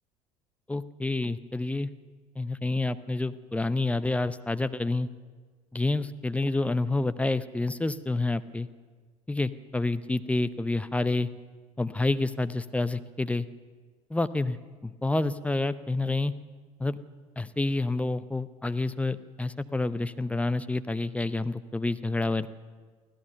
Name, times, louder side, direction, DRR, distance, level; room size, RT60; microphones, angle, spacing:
voice 1, 0.7-1.9 2.4-5.1 5.7-8.7 9.3-11.3 11.8-13.5 14.1-14.6 14.8-16.3 16.8-17.0 17.4-22.5, left 2 dB, 5° left, 12 dB, 0.7 m, -28 dB
24.5 x 15.5 x 6.8 m, 1.5 s
figure-of-eight pair, 65°, 19 cm